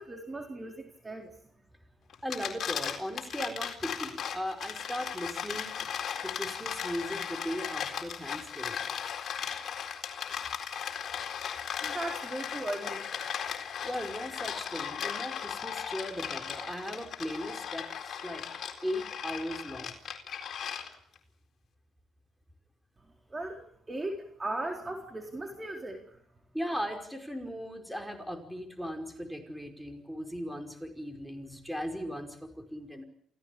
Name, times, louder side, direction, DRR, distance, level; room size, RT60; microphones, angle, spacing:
voice 1, 0.0-1.3 11.8-13.1 23.3-23.6 23.9-26.2, right 2 dB, 25° right, 3 dB, 3.9 m, -37 dB
sound 1, 2.1-21.2, left 8 dB, 60° left, 4.1 m, -37 dB
voice 2, 2.2-5.8 6.2-8.8 13.8-18.5 18.8-20.0 26.5-33.0, equal, ahead, 6 dB, 5.1 m, -38 dB
28.0 x 16.5 x 8.6 m, 0.65 s
cardioid pair, 90°, 0 cm